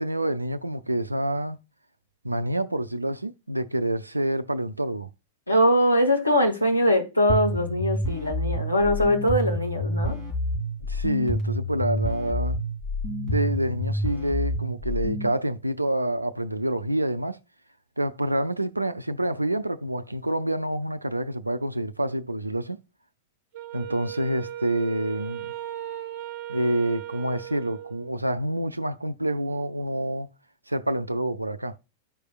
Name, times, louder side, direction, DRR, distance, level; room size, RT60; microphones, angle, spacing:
voice 1, 0.0-1.6 2.2-5.1 10.9-12.6 13.2-17.4 18.0-22.8 23.7-25.4 26.5-30.3 30.7-31.8, right 1 dB, 85° right, 0.4 m, -27 dB
voice 2, 5.5-10.2, equal, 85° left, 1.1 m, -22 dB
sound 1, 7.3-15.3, left 1 dB, 30° left, 2.7 m, -28 dB
Wind instrument woodwind instrument, 23.5-28.2, right 11 dB, 45° right, 0.9 m, -37 dB
13.5 x 5.0 x 2.4 m
figure-of-eight pair, 95°, 0 cm